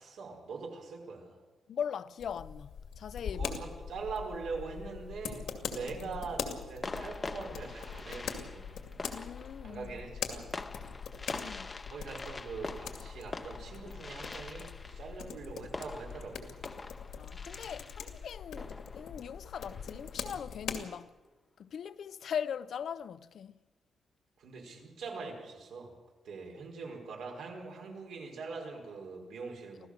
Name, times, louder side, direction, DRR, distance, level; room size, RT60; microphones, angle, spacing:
voice 1, 0.0-1.4 3.3-8.8 9.6-10.5 11.9-16.6 24.4-26.0 26.2-29.9, right 4 dB, 85° right, 5.1 m, -43 dB
voice 2, 1.7-3.5 5.9-6.1 9.1-10.0 11.4-11.7 17.2-21.1 21.6-23.5 29.8-29.9, left 8 dB, 60° left, 0.6 m, -40 dB
sound 1, 2.2-20.8, left 7 dB, 85° left, 2.4 m, -42 dB
sound 2, 5.3-5.9 6.8-20.2, left 3 dB, 25° left, 0.7 m, -45 dB
sound 3, 5.7-8.0, right 12 dB, 50° right, 0.7 m, -54 dB
25.5 x 16.0 x 6.6 m
wide cardioid pair, 160°, 0 cm